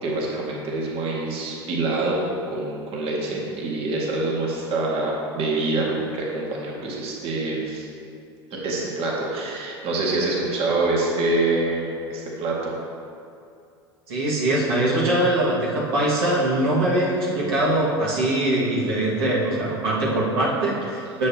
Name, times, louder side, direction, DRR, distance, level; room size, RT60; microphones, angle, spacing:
voice 1, 0.0-2.2 2.5-7.9 8.5-12.8 21.1-21.2, right 2 dB, 45° right, -3 dB, 1.9 m, -26 dB
voice 2, 14.1-21.3, right 1 dB, 75° right, -6 dB, 1.9 m, -22 dB
10.5 x 7.4 x 2.9 m, 2.5 s
hypercardioid pair, 80°, 13 cm